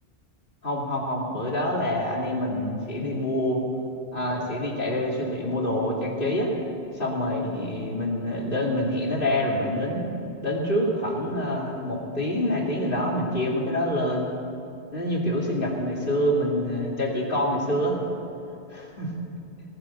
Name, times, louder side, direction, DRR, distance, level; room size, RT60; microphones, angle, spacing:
voice 1, 0.6-3.6 4.1-6.5 6.9-10.0 10.4-14.3 14.9-18.0 18.7-19.1, left 1 dB, 55° left, -2 dB, 2.8 m, -26 dB
18.0 x 10.0 x 7.0 m, 2.7 s
omnidirectional pair, 1.1 m